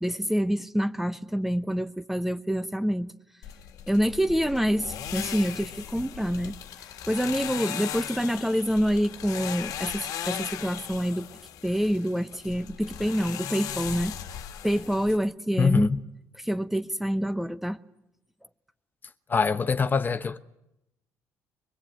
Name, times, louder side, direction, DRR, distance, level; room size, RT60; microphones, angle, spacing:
voice 1, 0.0-3.1 3.9-6.5 7.1-11.3 11.6-14.1 14.6-15.9 16.4-17.8, equal, 5° right, 0.9 m, -27 dB
sound 1, 3.4-15.2, left 10 dB, 75° left, 1.6 m, -38 dB
voice 2, 15.6-16.0 19.3-20.4, left 5 dB, 30° left, 1.0 m, -24 dB
23.5 x 22.0 x 9.1 m
cardioid pair, 90°, 6 cm